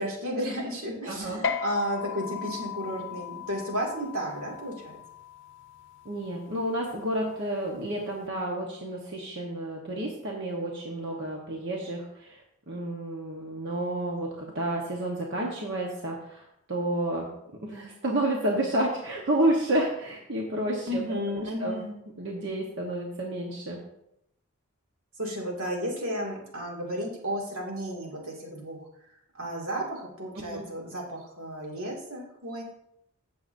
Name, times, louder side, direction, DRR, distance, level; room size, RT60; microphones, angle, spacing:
voice 1, 0.0-5.0 20.9-21.9 25.2-28.9 29.3-32.6, equal, 85° right, -1 dB, 2.3 m, -33 dB
voice 2, 1.0-1.4 6.0-17.3 17.6-21.0 21.3-21.8 22.2-23.8 30.3-30.6, right 1 dB, 55° right, -1 dB, 1.1 m, -30 dB
sound 1, 1.4-8.2, left 6 dB, 60° left, 0.6 m, -38 dB
15.0 x 6.8 x 2.6 m, 0.79 s
head